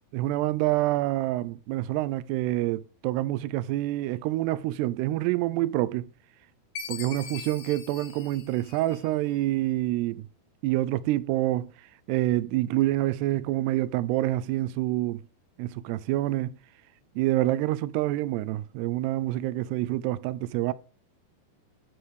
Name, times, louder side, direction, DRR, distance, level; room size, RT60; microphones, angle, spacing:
voice 1, 0.1-6.1 6.9-10.2 10.6-11.7 12.1-15.2 15.6-16.5 17.2-20.7, right 16 dB, 90° right, 2.7 m, -27 dB
Chime, 6.8-9.3, left 7 dB, 75° left, 2.7 m, -41 dB
12.5 x 4.8 x 6.3 m
omnidirectional pair, 4.7 m